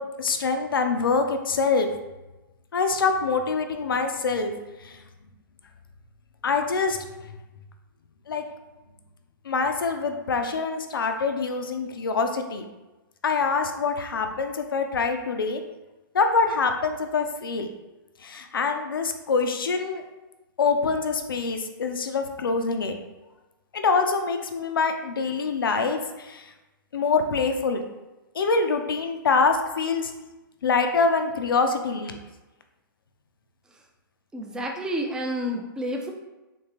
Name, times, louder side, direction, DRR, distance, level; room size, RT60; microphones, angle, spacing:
voice 1, 0.0-1.9 2.7-4.5 4.8-5.0 6.4-7.0 8.3-8.4 9.5-12.6 13.2-15.6 16.1-17.7 18.2-20.0 20.6-22.9 23.7-26.5 26.9-27.9 28.3-30.1 30.6-32.2, left 4 dB, 80° left, 6 dB, 0.4 m, -25 dB
voice 2, 34.3-36.1, equal, 5° right, 1 dB, 0.4 m, -29 dB
3.5 x 2.8 x 2.9 m, 1.1 s
hypercardioid pair, 120°, 11 cm